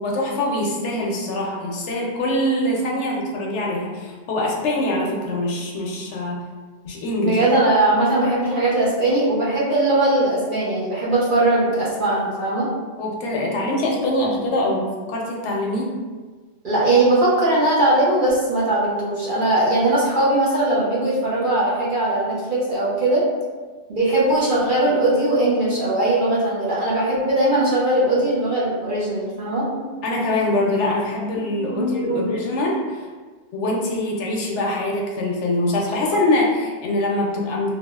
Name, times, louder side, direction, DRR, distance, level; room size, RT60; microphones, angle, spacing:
voice 1, 0.0-6.4 6.8-7.4 13.0-15.9 30.0-33.1 33.5-37.8, left 1 dB, 70° left, -1 dB, 0.8 m, -23 dB
voice 2, 7.2-12.7 16.6-23.2 23.9-29.9 31.5-32.4, right 2 dB, 50° right, -8 dB, 0.8 m, -20 dB
3.3 x 2.3 x 2.3 m, 1.4 s
omnidirectional pair, 1.3 m